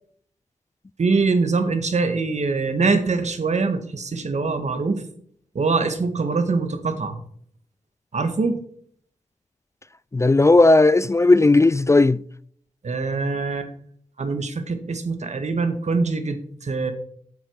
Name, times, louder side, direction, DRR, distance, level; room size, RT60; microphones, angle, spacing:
voice 1, 1.0-5.0 5.5-7.2 8.1-8.6 12.8-13.7 14.2-16.9, right 4 dB, 60° right, 1.8 m, -23 dB
voice 2, 10.1-12.2, left 2 dB, 20° left, 0.4 m, -15 dB
8.7 x 7.5 x 7.1 m
cardioid pair, 50°, 13 cm